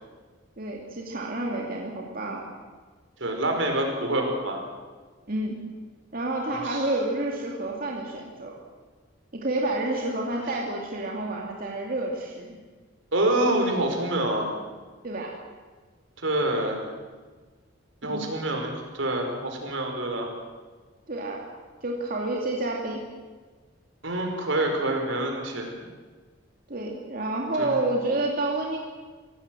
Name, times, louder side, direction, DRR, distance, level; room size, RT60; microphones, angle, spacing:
voice 1, 0.6-2.4 5.3-5.6 6.1-8.5 9.3-12.6 15.0-15.3 18.1-18.3 21.1-21.4 21.8-23.0 26.7-28.8, right 2 dB, 50° right, -1 dB, 2.7 m, -29 dB
voice 2, 3.2-4.6 6.5-6.9 13.1-14.5 16.2-16.8 18.0-20.3 24.0-25.7 27.6-27.7, right 1 dB, 80° right, 3 dB, 5.0 m, -26 dB
25.0 x 17.5 x 7.7 m, 1.4 s
head